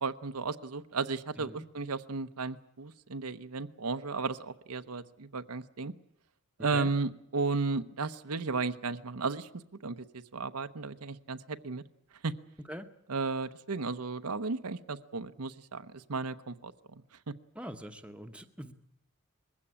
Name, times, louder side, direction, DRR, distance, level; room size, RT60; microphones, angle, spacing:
voice 1, 0.0-5.9 6.6-9.5 9.8-11.8 12.2-12.3 13.1-17.0, right 4 dB, 85° right, 10 dB, 0.9 m, -34 dB
voice 2, 17.6-18.7, equal, 5° right, 6 dB, 1.0 m, -43 dB
21.0 x 16.0 x 10.0 m, 0.77 s
head